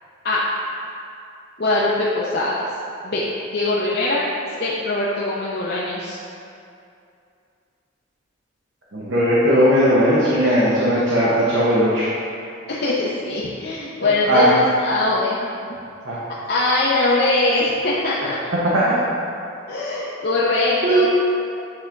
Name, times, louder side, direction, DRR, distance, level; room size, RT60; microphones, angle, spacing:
voice 1, 1.6-2.7 3.0-3.2 3.5-4.3 4.6-6.2 12.7-15.5 16.5-18.4 19.7-21.1, left 2 dB, 50° left, -6 dB, 0.6 m, -21 dB
voice 2, 8.9-12.1 14.0-14.5 16.1-16.2 20.8-21.1, equal, 65° right, -8 dB, 1.0 m, -18 dB
8.6 x 3.5 x 3.8 m, 2.5 s
head